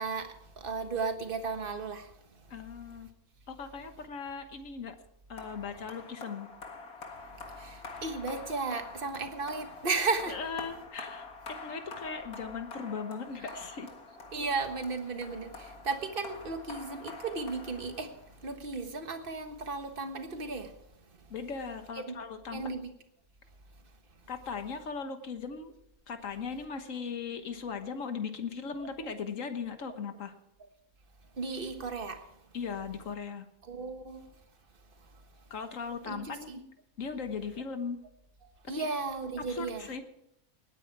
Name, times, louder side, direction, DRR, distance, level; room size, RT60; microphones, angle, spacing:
voice 1, 0.0-2.5 7.3-10.4 13.4-13.5 14.3-20.7 21.1-21.3 21.9-22.1 22.5-22.9 28.8-28.9 31.3-32.3 33.6-34.3 35.0-35.2 36.0-36.6 38.7-39.9, right 4 dB, 40° right, 1.5 m, -35 dB
voice 2, 2.5-3.1 3.5-4.9 5.3-6.5 10.3-11.3 11.6-13.9 21.3-22.6 24.3-25.7 26.1-30.3 32.5-33.5 35.5-36.5 37.0-38.0 38.8-38.9 39.5-40.0, left 5 dB, 65° left, 1.6 m, -38 dB
sound 1, 5.4-18.4, left 4 dB, 90° left, 2.2 m, -46 dB
19.0 x 9.5 x 4.7 m
omnidirectional pair, 1.5 m